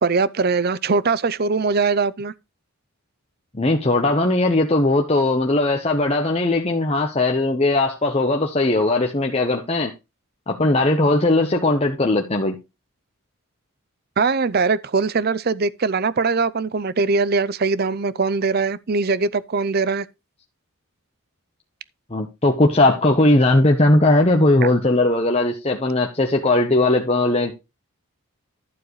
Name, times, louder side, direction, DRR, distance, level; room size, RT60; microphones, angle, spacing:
voice 1, 0.0-2.3 14.2-20.1 24.6-24.7, right 4 dB, 45° right, 0.5 m, -21 dB
voice 2, 3.5-9.9 10.5-12.6 22.1-27.5, left 2 dB, 30° left, 1.0 m, -18 dB
11.5 x 7.5 x 3.1 m
head